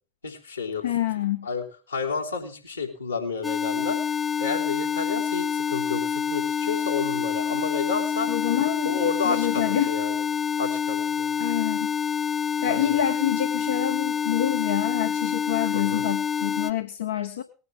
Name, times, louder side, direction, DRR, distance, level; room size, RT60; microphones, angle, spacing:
voice 1, 0.2-0.9 1.4-4.0 4.4-8.3 8.8-10.2 10.6-11.3 12.6-13.0 15.7-16.1, left 5 dB, 85° left, -3 dB, 3.5 m, -30 dB
voice 2, 0.8-1.5 8.3-9.9 11.4-11.9 12.6-17.4, left 11 dB, 65° left, 7 dB, 1.0 m, -27 dB
sound 1, 3.4-16.7, left 7 dB, 20° left, 1.0 m, -27 dB
20.0 x 9.6 x 3.6 m, 0.36 s
figure-of-eight pair, 75°, 0 cm